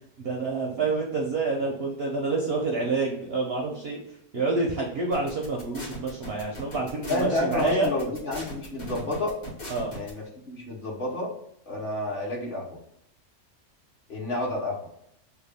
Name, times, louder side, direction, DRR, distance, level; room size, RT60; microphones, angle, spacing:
voice 1, 0.2-4.0 4.3-7.9 9.7-9.9, right 3 dB, 60° right, 0 dB, 0.6 m, -28 dB
sound 1, 5.1-10.1, right 1 dB, 90° left, 2.0 m, -38 dB
voice 2, 7.1-9.4 9.9-11.3 11.7-12.8 14.1-14.9, left 2 dB, 45° left, -4 dB, 0.9 m, -30 dB
3.5 x 2.3 x 3.4 m, 0.75 s
omnidirectional pair, 1.6 m